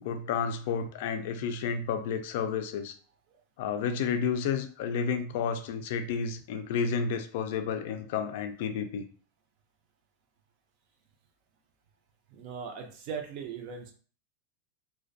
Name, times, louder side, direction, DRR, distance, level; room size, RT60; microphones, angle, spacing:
voice 1, 0.0-2.9 3.6-9.0, left 6 dB, 60° left, 8 dB, 0.3 m, -31 dB
voice 2, 12.3-13.9, right 6 dB, 45° right, 4 dB, 0.5 m, -39 dB
2.4 x 2.2 x 2.5 m, 0.42 s
supercardioid pair, 150°, 0 cm